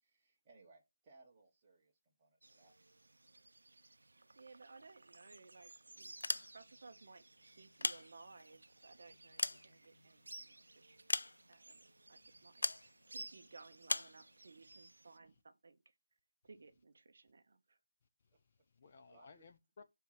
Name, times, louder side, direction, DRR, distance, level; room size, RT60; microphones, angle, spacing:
voice 1, 0.0-2.8 10.8-11.2 18.8-19.5, right 3 dB, 10° right, 1.1 m, -66 dB
sound 1, 2.4-15.2, right 2 dB, 75° right, 0.5 m, -58 dB
voice 2, 4.4-11.0 11.5-11.8 12.1-15.8 16.4-17.8, right 3 dB, 35° right, 0.7 m, -60 dB
sound 2, 6.1-6.9 7.6-8.6 9.1-10.3 11.1-11.7 12.6-12.9 13.9-14.2, left 2 dB, 85° left, 0.4 m, -38 dB
voice 3, 18.3-19.8, left 4 dB, 20° left, 0.3 m, -61 dB
5.6 x 3.7 x 5.7 m
figure-of-eight pair, 180°, 0 cm